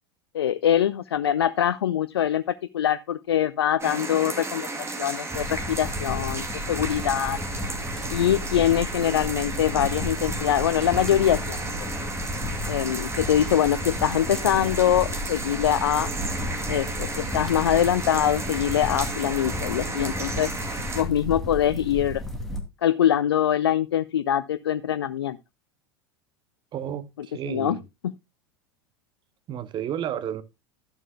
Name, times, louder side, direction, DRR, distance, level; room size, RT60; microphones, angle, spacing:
voice 1, 0.3-2.4 2.7-4.7 5.0-7.4 8.1-11.9 12.7-16.1 16.7-20.5 20.9-22.2 22.8-25.4 27.5-27.8, left 10 dB, 70° left, 0.5 m, -23 dB
sound 1, 3.8-21.0, right 3 dB, 20° right, 2.5 m, -33 dB
sound 2, 5.3-22.6, left 2 dB, ahead, 2.5 m, -33 dB
voice 2, 26.7-27.8 29.5-30.4, right 10 dB, 35° right, 1.1 m, -32 dB
12.5 x 11.0 x 2.2 m
figure-of-eight pair, 80°, 14 cm